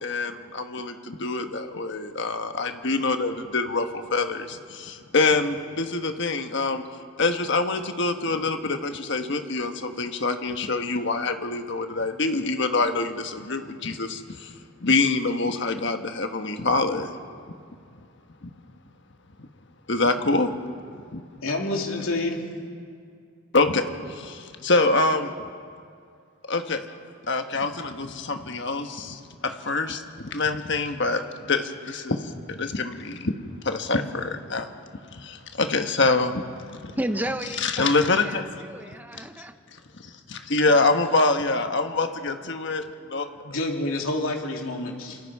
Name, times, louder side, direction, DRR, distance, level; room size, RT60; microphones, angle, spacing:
voice 1, 0.0-6.8 7.2-17.1 18.4-18.5 19.4-19.5 19.9-20.5 20.9-21.2 23.5-25.3 26.5-26.9 27.3-33.3 33.6-34.7 35.1-36.4 36.7-36.9 37.6-38.5 39.1-39.3 40.0-43.3, left 3 dB, 55° left, 6 dB, 1.4 m, -25 dB
voice 2, 21.4-22.4 43.4-45.2, left 2 dB, 75° left, 1 dB, 2.8 m, -28 dB
voice 3, 37.0-39.5, right 1 dB, 10° right, 8 dB, 0.7 m, -32 dB
27.0 x 26.5 x 4.8 m, 2.3 s
head